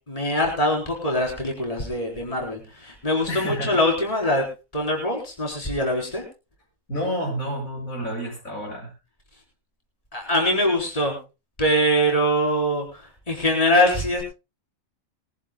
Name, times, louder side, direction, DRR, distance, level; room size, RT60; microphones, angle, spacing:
voice 1, 0.1-4.5 4.7-6.2 10.1-11.2 11.6-14.2, equal, 25° left, 1 dB, 4.2 m, -23 dB
voice 2, 3.3-3.8 6.9-8.9, equal, 80° left, 0 dB, 8.2 m, -29 dB
22.5 x 15.0 x 2.2 m, 0.29 s
omnidirectional pair, 1.4 m